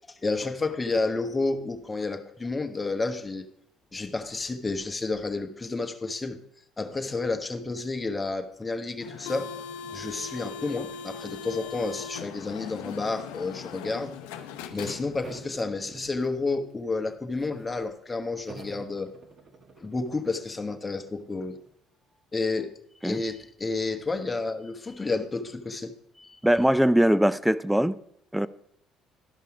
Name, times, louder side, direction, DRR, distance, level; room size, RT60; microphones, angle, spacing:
voice 1, 0.1-3.5 3.9-6.4 6.8-9.5 9.9-14.2 14.7-19.1 19.8-21.6 22.3-22.8 23.0-26.4, left 3 dB, 20° left, 1.2 m, -30 dB
sound 1, 9.0-15.5, left 6 dB, 90° left, 0.7 m, -39 dB
sound 2, 15.2-16.7 17.1-17.8 18.5-21.7, right 3 dB, 50° right, 1.6 m, -49 dB
voice 2, 26.4-28.0 28.3-28.5, equal, 5° right, 0.4 m, -21 dB
12.0 x 5.5 x 4.8 m
supercardioid pair, 75°, 0 cm